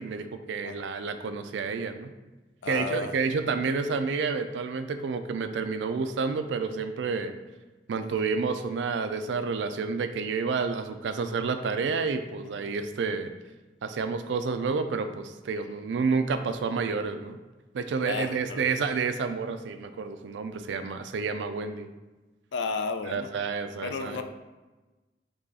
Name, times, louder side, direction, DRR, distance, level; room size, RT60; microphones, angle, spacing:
voice 1, 0.0-2.1 2.7-7.3 7.9-13.3 13.8-17.4 17.7-21.9 23.1-24.2, right 4 dB, 90° right, 9 dB, 0.4 m, -29 dB
voice 2, 2.6-3.1 8.0-8.3 12.6-12.7 18.0-18.7 22.5-23.3 23.8-24.2, left 4 dB, 90° left, 8 dB, 0.4 m, -33 dB
5.2 x 2.3 x 4.0 m, 1.2 s
head